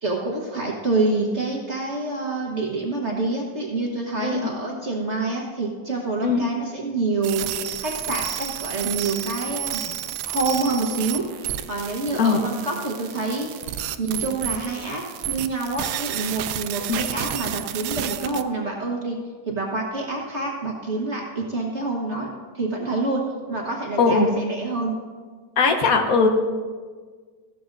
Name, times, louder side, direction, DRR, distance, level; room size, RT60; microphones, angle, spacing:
voice 1, 0.0-7.5 7.8-9.8 10.2-13.5 14.0-19.2 19.5-22.3 22.5-25.0, right 3 dB, 45° right, -1 dB, 1.4 m, -27 dB
sound 1, 7.2-18.4, right 12 dB, 75° right, 1.1 m, -31 dB
voice 2, 12.1-12.4 16.9-17.0 24.0-24.3 25.6-26.3, left 4 dB, 60° left, 5 dB, 1.4 m, -19 dB
15.5 x 12.5 x 2.6 m, 1.5 s
omnidirectional pair, 1.8 m